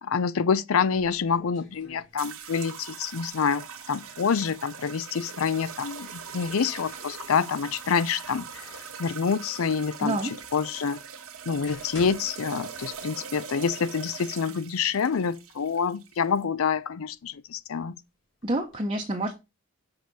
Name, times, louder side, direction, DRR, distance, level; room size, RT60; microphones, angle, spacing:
voice 1, 0.1-8.7 9.0-10.2 10.5-11.0 11.5-17.9, left 6 dB, 75° left, 0.5 m, -27 dB
sound 1, 0.9-2.7 3.0-4.4 5.5-7.6 8.1-9.1 9.8-9.9 10.6-10.7 11.3-13.3 13.6-13.7 14.4-14.5 14.9-15.6 16.1-17.8 18.4-18.8, left 3 dB, 60° left, 2.6 m, -50 dB
sound 2, 2.2-16.4, right 6 dB, 80° right, 1.2 m, -41 dB
voice 2, 10.0-10.3 18.4-19.4, right 1 dB, 25° right, 0.8 m, -28 dB
6.2 x 4.8 x 4.1 m
head